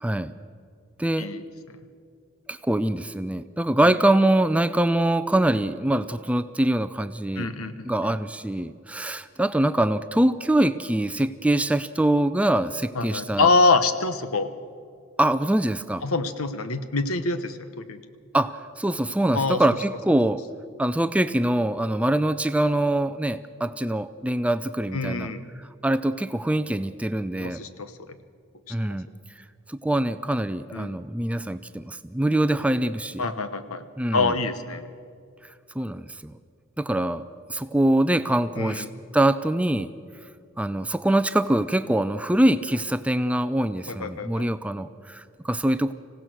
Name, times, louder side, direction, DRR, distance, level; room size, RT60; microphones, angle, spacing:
voice 1, 0.0-0.3 1.0-1.3 2.5-7.5 7.9-13.5 15.2-16.0 18.3-20.4 20.8-25.3 25.8-27.6 28.7-29.1 29.7-33.3 34.0-34.3 35.8-36.3 36.8-37.2 37.5-38.9 39.1-39.9 40.6-45.9, right 1 dB, 5° right, 12 dB, 0.4 m, -24 dB
voice 2, 7.4-8.1 12.9-14.5 16.0-18.0 19.3-19.6 24.9-25.4 27.4-28.2 28.7-28.8 30.7-30.9 33.2-33.8 34.1-34.9 38.6-38.9 43.9-44.5, left 3 dB, 90° left, 11 dB, 1.1 m, -25 dB
26.0 x 16.5 x 6.2 m, 2.3 s
head